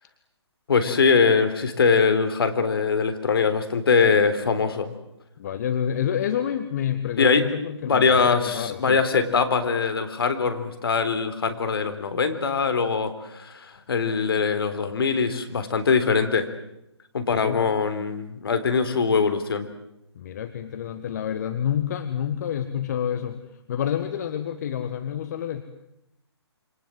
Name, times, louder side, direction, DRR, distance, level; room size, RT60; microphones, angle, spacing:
voice 1, 0.7-4.9 7.2-7.4 7.8-16.5 17.1-19.7, left 5 dB, 55° left, 8 dB, 3.8 m, -22 dB
voice 2, 5.4-9.0 17.3-17.7 20.1-23.4 23.7-25.6, left 9 dB, 40° left, 9 dB, 1.7 m, -28 dB
28.0 x 25.5 x 7.8 m, 0.83 s
figure-of-eight pair, 140°, 15 cm